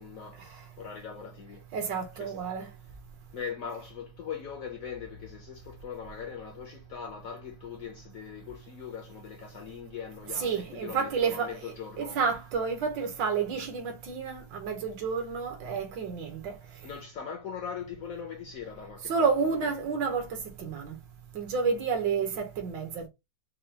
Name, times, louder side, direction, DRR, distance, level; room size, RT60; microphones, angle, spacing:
voice 1, 0.0-1.7 2.2-2.4 3.3-12.2 16.8-19.3, left 7 dB, 70° left, 0.8 m, -41 dB
voice 2, 1.7-2.7 10.3-16.5 19.1-20.9 21.3-23.1, right 5 dB, 75° right, 1.6 m, -30 dB
5.3 x 2.2 x 2.7 m
omnidirectional pair, 2.0 m